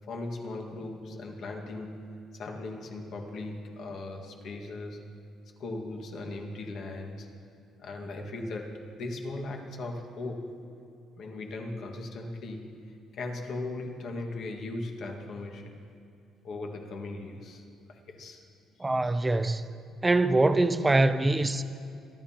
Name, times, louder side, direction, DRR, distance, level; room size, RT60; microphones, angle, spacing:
voice 1, 0.1-5.0 5.6-7.3 7.8-10.6 11.2-15.7 16.4-18.4 18.8-19.0, left 2 dB, 55° left, 1.7 m, -38 dB
voice 2, 18.8-19.8 20.0-21.6, right 2 dB, 15° right, 0.5 m, -24 dB
24.0 x 11.0 x 2.9 m
cardioid pair, 140°, 0 cm